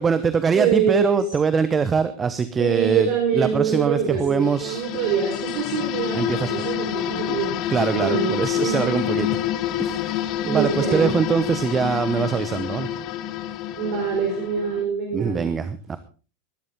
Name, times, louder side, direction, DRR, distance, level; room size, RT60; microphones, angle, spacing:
voice 1, 0.0-3.1 3.3-4.8 6.1-6.7 7.7-9.3 9.8-12.9 15.1-16.0, right 6 dB, 20° right, 13 dB, 1.0 m, -23 dB
voice 2, 0.5-1.2 2.6-7.6 7.9-9.0 10.4-11.1 13.8-15.5, right 7 dB, 45° right, 1 dB, 4.7 m, -24 dB
sound 1, 4.4-14.9, left 12 dB, 45° left, 1.0 m, -28 dB
19.5 x 13.0 x 3.8 m, 0.36 s
figure-of-eight pair, 85°, 0 cm